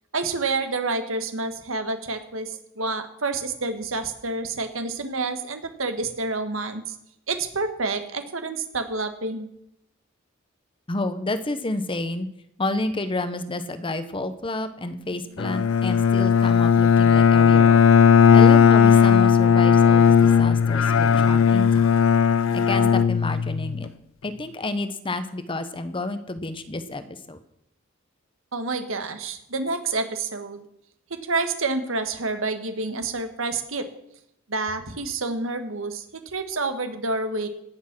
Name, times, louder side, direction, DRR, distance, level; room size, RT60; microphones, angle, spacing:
voice 1, 0.1-6.9 7.3-9.5 28.5-30.7 31.1-33.8 34.5-37.5, right 3 dB, 80° right, 8 dB, 1.6 m, -28 dB
voice 2, 10.9-12.3 12.6-17.8 18.3-21.9 22.5-23.9 24.2-27.4, left 2 dB, 25° left, 11 dB, 0.9 m, -30 dB
Bowed string instrument, 15.4-23.8, left 7 dB, 85° left, 0.5 m, -16 dB
18.0 x 7.3 x 6.1 m, 0.78 s
head